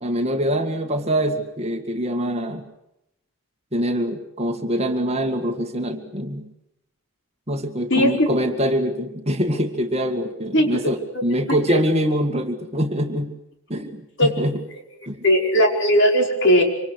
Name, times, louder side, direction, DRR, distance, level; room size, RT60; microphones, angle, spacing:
voice 1, 0.0-2.6 3.7-6.5 7.5-13.4 13.7-14.6 15.1-15.2, equal, 30° right, 5 dB, 2.0 m, -24 dB
voice 2, 7.9-8.3 10.5-10.7 11.5-11.8 14.2-14.3 14.7-14.8 15.2-16.6, equal, 55° left, 2 dB, 5.1 m, -18 dB
26.5 x 25.5 x 6.4 m, 0.85 s
head